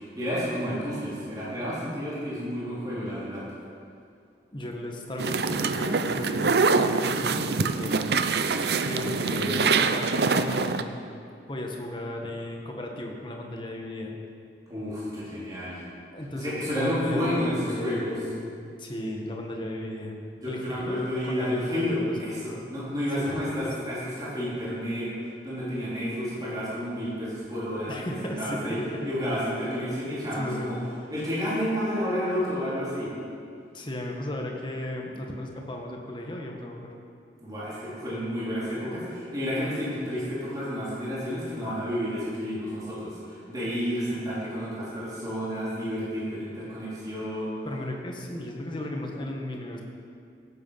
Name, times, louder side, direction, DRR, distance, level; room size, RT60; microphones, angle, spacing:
voice 1, 0.0-3.4 9.0-9.7 14.7-15.8 16.3-18.2 20.4-25.1 25.4-28.8 29.0-30.8 31.1-33.1 37.4-47.6, equal, 20° right, -9 dB, 3.6 m, -30 dB
voice 2, 4.5-8.0 8.7-11.1 11.5-14.2 16.1-20.2 20.5-22.3 23.1-23.7 27.9-29.5 30.3-30.7 33.7-36.9 47.6-49.8, left 1 dB, 25° left, 1 dB, 1.5 m, -35 dB
sound 1, 5.2-10.8, right 4 dB, 65° right, 0.6 m, -25 dB
17.5 x 8.1 x 5.7 m, 2.4 s
head